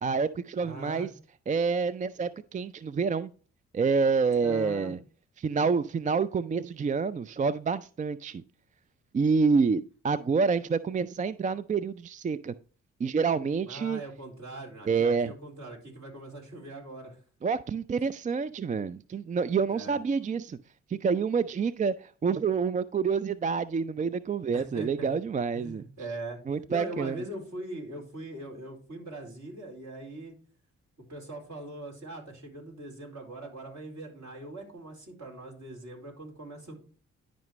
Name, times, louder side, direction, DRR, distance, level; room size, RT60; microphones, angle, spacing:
voice 1, 0.0-1.1 1.5-3.3 3.7-5.0 5.4-8.4 9.1-12.5 13.0-14.0 14.9-15.3 17.4-20.6 20.9-25.8 26.5-27.2, right 5 dB, 25° right, 16 dB, 0.4 m, -28 dB
voice 2, 0.6-1.1 4.4-4.9 13.7-17.2 19.7-20.0 24.5-25.1 25.5-26.4 26.7-30.3 31.1-36.7, right 1 dB, 50° right, -1 dB, 4.0 m, -41 dB
10.5 x 5.1 x 3.1 m, 0.40 s
hypercardioid pair, 40°, 34 cm